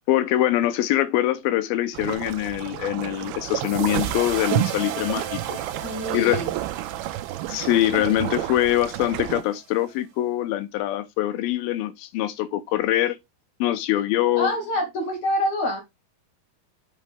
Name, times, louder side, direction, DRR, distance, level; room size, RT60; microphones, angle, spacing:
voice 1, 0.1-5.6 6.1-6.4 7.5-13.2 13.6-14.5, left 13 dB, 75° left, 2.5 m, -23 dB
sound 1, 1.9-9.4, right 14 dB, 80° right, 2.4 m, -30 dB
sound 2, 3.6-9.9, right 9 dB, 65° right, 2.0 m, -37 dB
voice 2, 5.8-6.5 14.3-15.8, left 1 dB, 50° left, 3.4 m, -26 dB
6.4 x 6.4 x 3.6 m
omnidirectional pair, 4.6 m